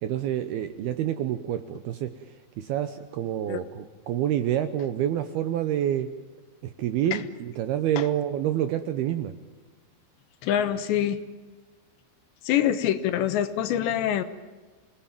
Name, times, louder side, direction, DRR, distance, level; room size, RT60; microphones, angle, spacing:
voice 1, 0.0-2.1 2.6-6.1 6.8-9.3, right 11 dB, 75° right, 10 dB, 2.4 m, -27 dB
voice 2, 10.4-11.2 12.5-14.2, left 10 dB, 75° left, 12 dB, 3.2 m, -25 dB
28.0 x 18.5 x 9.0 m, 1.3 s
omnidirectional pair, 5.5 m